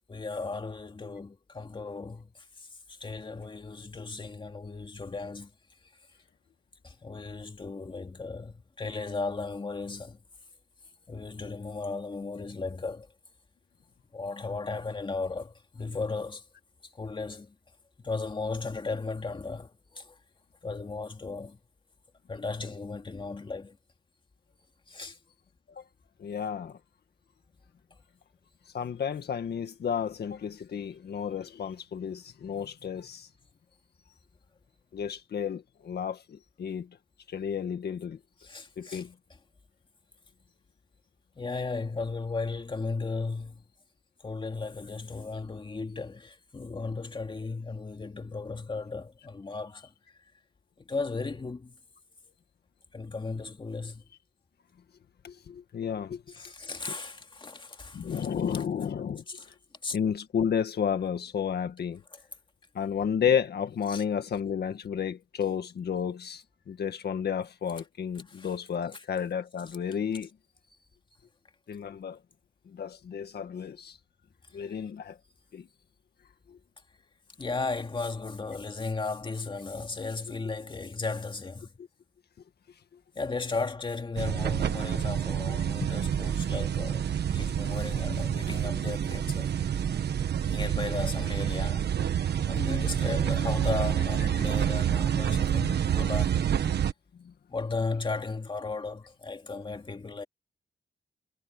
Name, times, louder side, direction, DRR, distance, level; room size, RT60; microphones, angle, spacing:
voice 1, 0.1-5.5 5.8-5.9 6.8-10.2 11.1-13.1 14.1-16.5 16.8-17.6 18.0-20.2 20.6-21.6 22.3-23.8 24.9-25.2 38.4-39.4 41.4-43.7 44.2-50.2 50.8-51.8 52.9-54.1 56.3-58.6 59.3-59.5 59.8-60.0 62.1-62.2 63.9-64.0 68.3-68.5 68.9-69.0 69.7-69.8 74.5-74.8 77.4-81.7 83.1-89.5 90.5-91.9 92.5-96.7 97.5-100.2, left 3 dB, 30° left, 2.4 m, -36 dB
voice 2, 26.2-26.8 28.7-33.3 34.9-36.9 37.3-38.2 38.8-39.1 55.2-56.2 57.9-59.2 59.9-62.0 62.8-70.3 71.7-72.2 72.7-74.0 74.5-75.2 75.5-75.7 94.4-94.5, left 7 dB, 70° left, 1.7 m, -32 dB
sound 1, 84.2-96.9, right 9 dB, 75° right, 1.2 m, -28 dB
wide cardioid pair, 135°, 17 cm